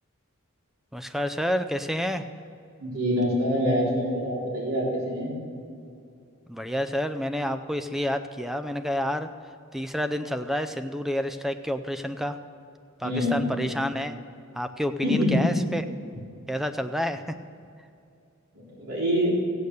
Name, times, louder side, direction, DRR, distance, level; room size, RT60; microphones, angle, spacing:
voice 1, 0.9-2.3 6.5-9.3 9.7-12.4 13.0-14.2 14.5-15.9 16.5-17.2, equal, ahead, 9 dB, 0.5 m, -29 dB
voice 2, 2.8-5.4 13.0-13.4 15.0-15.4 18.7-19.4, equal, 75° right, -5 dB, 3.8 m, -25 dB
16.0 x 8.5 x 6.7 m, 2.5 s
head